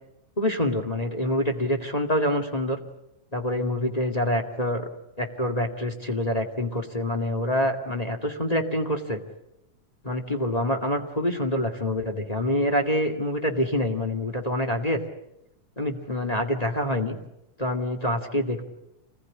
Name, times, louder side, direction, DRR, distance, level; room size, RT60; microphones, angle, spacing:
voice 1, 0.4-2.8 3.3-4.9 5.2-9.2 10.0-15.0 15.8-17.2 17.6-18.6, left 1 dB, 15° left, 3 dB, 1.6 m, -26 dB
27.5 x 19.5 x 9.8 m, 0.87 s
omnidirectional pair, 3.7 m